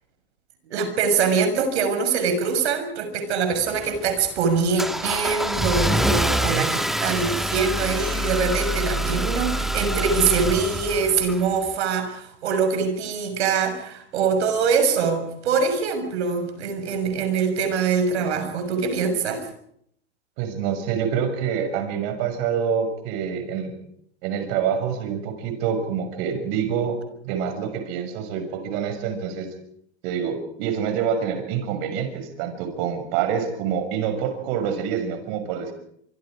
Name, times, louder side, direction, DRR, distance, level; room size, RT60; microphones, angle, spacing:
voice 1, 0.7-19.5, right 5 dB, 75° right, 7 dB, 6.4 m, -23 dB
Car / Engine starting, 3.5-11.7, equal, ahead, 1.5 m, -26 dB
voice 2, 20.4-23.7 24.2-27.0 27.2-29.5 30.0-35.7, right 7 dB, 55° right, 7 dB, 6.3 m, -26 dB
25.5 x 25.0 x 5.0 m, 0.69 s
hypercardioid pair, 100°, 34 cm